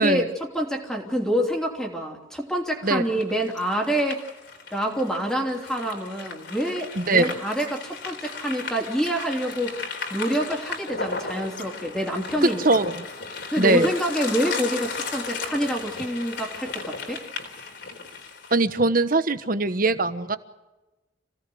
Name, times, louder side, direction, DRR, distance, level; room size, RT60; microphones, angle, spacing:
voice 1, 0.0-4.2 4.7-9.7 10.1-12.6 13.5-17.2, equal, 5° left, 1 dB, 3.1 m, -27 dB
sound 1, 3.2-18.6, left 4 dB, 60° left, 3.8 m, -35 dB
voice 2, 7.0-7.3 12.4-12.9 13.6-13.9 18.5-20.4, right 2 dB, 45° right, 11 dB, 1.2 m, -21 dB
27.5 x 17.5 x 7.8 m, 1.1 s
head